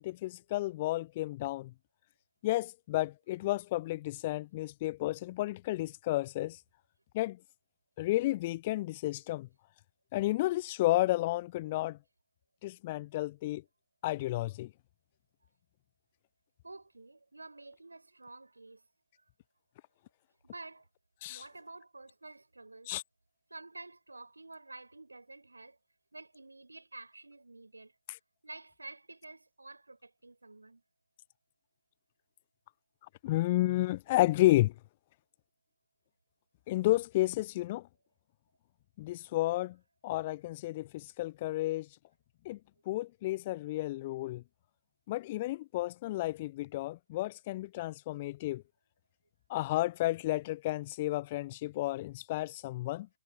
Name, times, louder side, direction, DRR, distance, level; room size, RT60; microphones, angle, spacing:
voice 1, 0.0-1.7 2.4-6.6 7.1-7.4 8.0-9.5 10.1-12.0 12.6-13.6 14.0-14.7 21.2-21.4 22.9-23.0 33.2-34.7 36.7-37.9 39.0-39.8 40.0-41.9 42.4-42.6 42.9-44.4 45.1-48.6 49.5-53.1, left 17 dB, 30° left, 0.7 m, -31 dB
voice 2, 16.6-18.8 19.2-19.3 20.4-20.9 21.3-22.9 23.5-25.8 26.1-27.9 28.4-30.8, right 2 dB, 75° right, 4.9 m, -50 dB
figure-of-eight pair, 140°, 0 cm